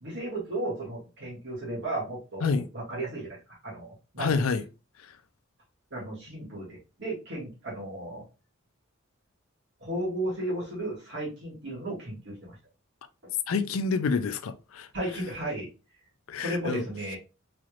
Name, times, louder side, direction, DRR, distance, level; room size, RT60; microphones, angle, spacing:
voice 1, 0.0-4.3 5.9-8.2 9.8-12.5 14.9-15.7 16.4-17.2, right 1 dB, 60° right, 2.1 m, -34 dB
voice 2, 4.2-4.6 13.5-14.9 16.3-16.8, left 4 dB, 80° left, 0.5 m, -27 dB
4.1 x 3.2 x 2.4 m
head